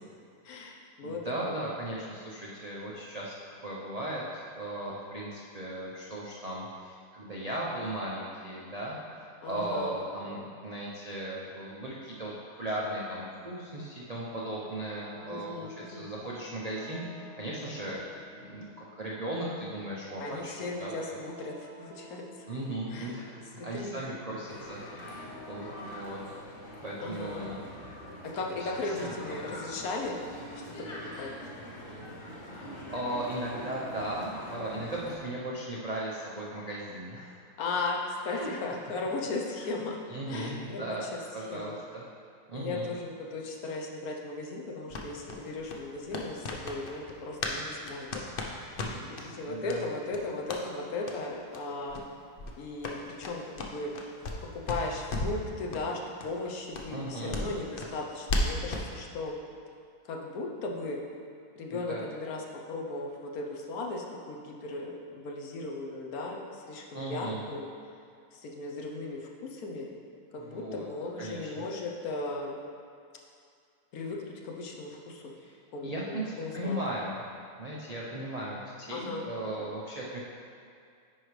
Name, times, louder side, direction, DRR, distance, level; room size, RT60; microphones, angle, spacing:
voice 1, 0.4-1.2 1.4-1.6 9.4-10.0 15.3-16.1 20.2-22.2 22.9-23.1 23.6-24.0 27.0-27.4 28.2-30.2 30.7-30.9 31.2-31.3 37.6-40.0 40.3-41.2 41.5-41.7 42.5-48.2 48.5-48.7 49.2-52.0 52.6-53.9 54.5-59.3 60.0-61.0 61.6-67.7 68.3-69.9 70.3-72.6 73.9-75.3 75.7-76.8 78.9-79.3, left 3 dB, 65° left, 0 dB, 1.1 m, -36 dB
voice 2, 1.0-3.3 3.6-12.3 12.6-18.0 18.4-21.2 22.5-26.2 26.8-27.7 28.8-29.5 32.5-37.3 38.3-38.5 39.6-39.7 40.1-41.1 41.3-42.0 42.5-42.9 48.8-49.9 56.9-57.5 61.7-62.0 66.9-67.4 70.4-70.9 71.2-71.6 75.4-75.5 75.8-76.2 76.5-77.2 77.6-80.2, right 1 dB, 90° right, -6 dB, 0.3 m, -37 dB
sound 1, 14.3-29.3, right 1 dB, 65° right, 0.8 m, -53 dB
sound 2, 24.5-35.2, equal, 45° left, 1.2 m, -43 dB
sound 3, 44.9-47.6 47.8-49.3 49.7-49.8 50.1-50.6 51.0-51.2 51.5-51.6 51.9-52.1 52.4-54.4 54.7-55.4 55.7-55.9 56.2-56.3 56.7-58.9, left 2 dB, 85° left, 0.4 m, -35 dB
10.0 x 4.8 x 3.2 m, 2.3 s
omnidirectional pair, 1.8 m